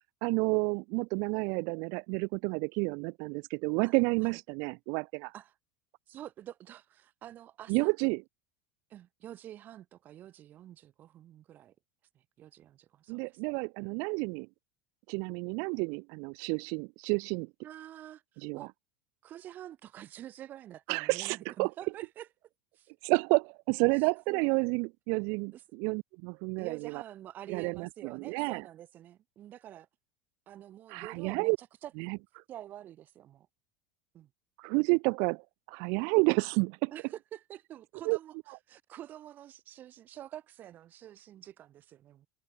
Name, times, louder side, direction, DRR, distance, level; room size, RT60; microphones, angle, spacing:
voice 1, 0.2-5.3 7.7-8.2 13.1-14.5 15.1-17.5 18.4-18.6 20.9-21.7 23.0-27.0 27.5-28.6 30.9-31.6 32.0-32.2 34.6-35.4 35.7-36.9 38.1-38.2, right 35 dB, 55° right, 0.4 m, -30 dB
voice 2, 6.1-8.1 8.9-11.7 12.1-13.5 17.6-18.7 19.2-22.3 22.7-22.9 24.3-24.7 25.5-25.6 26.6-29.9 30.5-31.9 32.5-33.5 34.1-34.3 36.9-38.3 38.7-42.3, right 12 dB, 30° right, 1.2 m, -47 dB
supercardioid pair, 160°, 6 cm